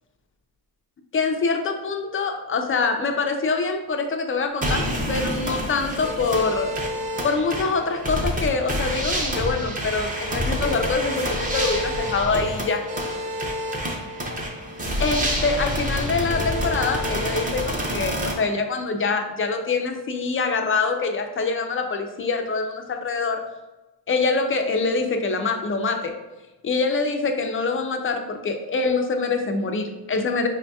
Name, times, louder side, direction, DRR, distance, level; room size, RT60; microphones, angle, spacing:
voice 1, 1.1-6.7 7.2-12.8 15.0-23.4 24.1-26.1 26.6-30.5, left 4 dB, 30° left, 4 dB, 0.4 m, -25 dB
sound 1, 4.6-18.3, equal, 15° right, 0.6 m, -27 dB
4.9 x 2.7 x 2.2 m, 1.1 s
cardioid pair, 85°, 49 cm